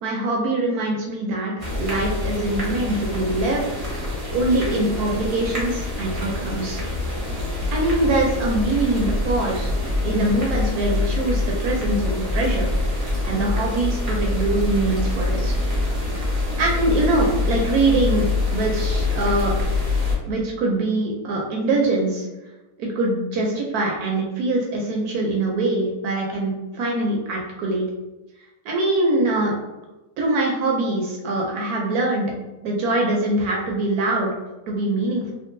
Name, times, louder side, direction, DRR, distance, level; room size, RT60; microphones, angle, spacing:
voice 1, 0.0-3.6 4.3-6.8 7.7-12.7 13.0-15.6 16.6-19.6 20.2-22.3 22.8-27.8 28.6-29.5 30.2-32.3 32.6-34.3 34.7-35.3, right 2 dB, 70° right, -1 dB, 1.0 m, -23 dB
sound 1, 1.6-20.2, left 2 dB, 50° right, 0.4 m, -25 dB
3.6 x 2.0 x 2.5 m, 1.0 s
omnidirectional pair, 1.8 m